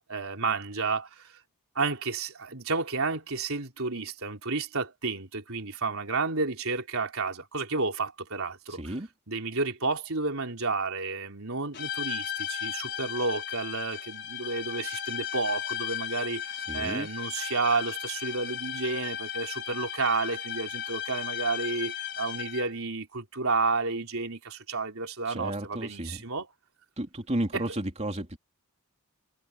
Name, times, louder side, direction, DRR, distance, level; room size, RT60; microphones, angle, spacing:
voice 1, 0.0-1.4 1.8-8.9 9.3-26.5 27.5-27.6, right 3 dB, 65° right, 4.1 m, -31 dB
voice 2, 8.8-9.1 16.7-17.1 25.3-26.2 27.0-28.4, right 1 dB, 30° right, 3.2 m, -32 dB
sound 1, 11.7-22.8, left 10 dB, 50° left, 5.3 m, -35 dB
head